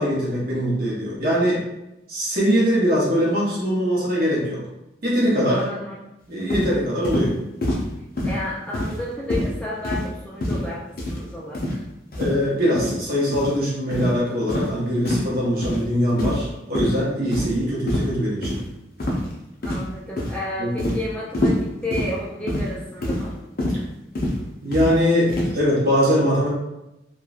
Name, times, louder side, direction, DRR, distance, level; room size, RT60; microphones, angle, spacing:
voice 1, 0.0-1.6 2.1-4.6 5.0-5.7 6.3-7.4 12.2-18.5 20.6-20.9 24.6-26.5, equal, 50° right, -6 dB, 0.9 m, -22 dB
voice 2, 5.6-6.1 8.2-10.8 11.1-11.8 19.6-23.4, left 1 dB, 5° left, -6 dB, 0.3 m, -32 dB
sound 1, 6.5-6.7 7.0-7.3 7.6-7.8 8.2-8.4 8.7-9.0 9.3-9.5 9.8-10.1 10.4-10.7 11.0-11.2 11.5-11.8 12.1-12.3 12.7-12.9 13.3-13.5 13.9-14.1 14.5-14.7 15.0-15.3 15.6-15.8 16.2-16.5 16.7-16.9 17.3-17.6 17.9-18.1 18.4-18.6 19.0-19.3 19.6-19.9 20.2-20.4 20.8-21.0 21.3-21.6 21.9-22.1 22.5-22.7 23.0-23.2 23.6-23.8 24.1-24.4 24.7-24.9 25.3-25.5, left 1 dB, 50° left, 0.6 m, -25 dB
3.0 x 2.3 x 2.4 m, 0.92 s
head